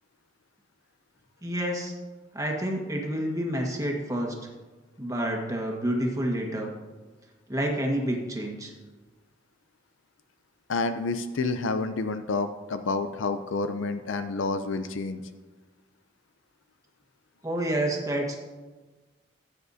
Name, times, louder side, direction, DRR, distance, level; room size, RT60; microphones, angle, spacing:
voice 1, 1.4-1.9 2.3-4.4 5.0-6.7 7.5-8.7 17.4-18.4, right 1 dB, 20° right, 0 dB, 1.5 m, -28 dB
voice 2, 10.7-15.2, left 3 dB, 75° left, 9 dB, 0.5 m, -29 dB
16.0 x 8.5 x 2.7 m, 1.3 s
head